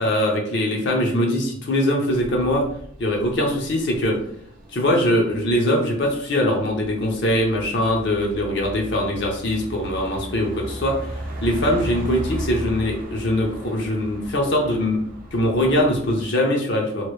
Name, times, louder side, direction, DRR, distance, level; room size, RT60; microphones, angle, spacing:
voice 1, 0.0-2.7 3.0-4.2 4.7-11.0 11.4-15.0 15.3-17.1, left 1 dB, 55° left, 1 dB, 0.6 m, -22 dB
sound 1, 2.1-16.3, right 1 dB, 45° right, 0.6 m, -36 dB
2.9 x 2.6 x 3.1 m, 0.67 s
head